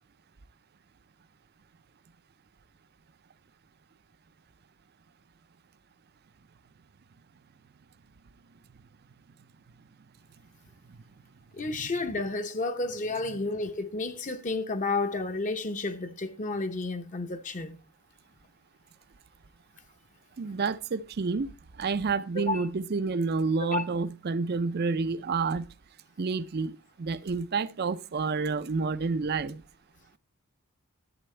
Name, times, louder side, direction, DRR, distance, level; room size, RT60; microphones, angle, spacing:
voice 1, 11.5-17.8 22.3-22.7 23.6-23.8, left 3 dB, 35° left, 0.8 m, -31 dB
voice 2, 20.4-21.5 21.8-25.7 26.2-29.6, right 4 dB, 45° right, 0.5 m, -29 dB
11.0 x 8.5 x 3.2 m
head